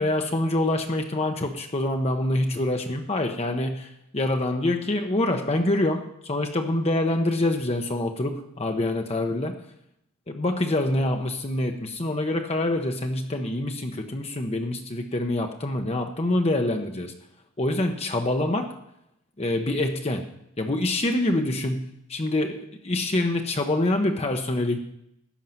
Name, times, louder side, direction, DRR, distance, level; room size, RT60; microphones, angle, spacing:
voice 1, 0.0-9.6 10.3-17.1 17.6-18.7 19.4-20.3 20.6-24.8, left 1 dB, 30° left, 4 dB, 0.8 m, -26 dB
13.0 x 5.6 x 9.3 m, 0.78 s
head